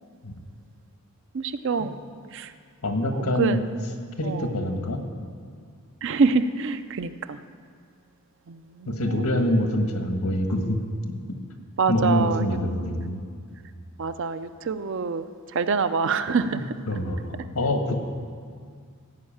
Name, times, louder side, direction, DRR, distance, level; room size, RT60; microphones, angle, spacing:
voice 1, 1.3-2.0 2.3-2.5 3.1-3.6 4.2-4.5 6.0-7.4 8.5-9.3 11.8-12.5 14.0-16.7, right 5 dB, 55° right, 11 dB, 0.5 m, -26 dB
voice 2, 2.8-3.6 4.2-5.0 8.9-10.8 11.9-13.2 16.9-18.0, left 1 dB, 90° left, 4 dB, 1.4 m, -25 dB
15.5 x 5.6 x 8.6 m, 2.1 s
head